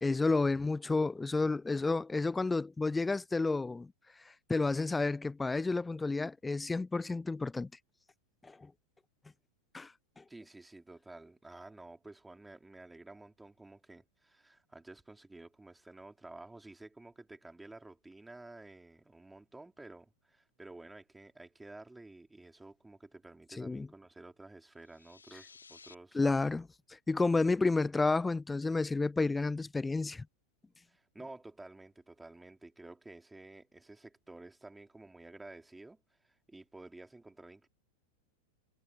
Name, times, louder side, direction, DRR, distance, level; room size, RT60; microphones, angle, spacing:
voice 1, 0.0-3.9 4.5-7.7 8.4-8.6 9.7-9.9 10.2-10.3 23.6-23.9 26.1-26.6 27.1-30.3, left 3 dB, 10° left, 0.4 m, -30 dB
voice 2, 10.3-26.5 30.9-37.7, right 2 dB, 5° right, 3.9 m, -52 dB
sound 1, 24.8-26.0, left 5 dB, 75° left, 2.4 m, -56 dB
figure-of-eight pair, 90°, 0 cm